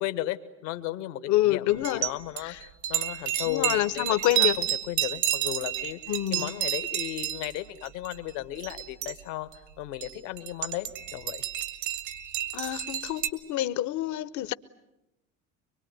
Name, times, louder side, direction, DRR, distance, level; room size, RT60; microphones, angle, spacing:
voice 1, 0.0-4.1 4.4-9.5 9.8-11.4, left 15 dB, 70° left, 1.4 m, -35 dB
voice 2, 1.3-2.1 2.4-2.6 3.5-4.6 6.1-6.5 12.5-14.5, left 14 dB, 50° left, 1.0 m, -27 dB
sound 1, 1.7-2.1 2.4-7.6 7.8-8.3 8.6-9.2 9.5-9.6 10.0-13.3, right 13 dB, 70° right, 2.5 m, -30 dB
24.0 x 23.0 x 9.3 m
hypercardioid pair, 65°, 38 cm